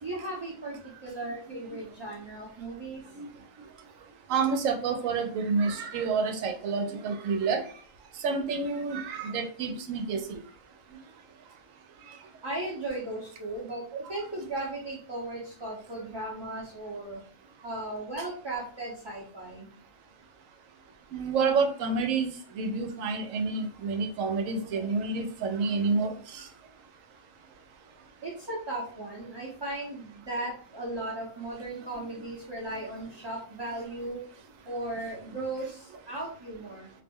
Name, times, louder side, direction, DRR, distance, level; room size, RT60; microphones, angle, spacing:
voice 1, 0.0-3.0 12.4-17.2 17.6-19.7 28.2-34.2 34.7-36.9, right 2 dB, 30° right, -6 dB, 0.5 m, -36 dB
voice 2, 4.3-7.6 8.2-10.4 21.1-26.5, right 4 dB, 85° right, 6 dB, 1.0 m, -29 dB
2.6 x 2.0 x 3.6 m, 0.43 s
omnidirectional pair, 1.3 m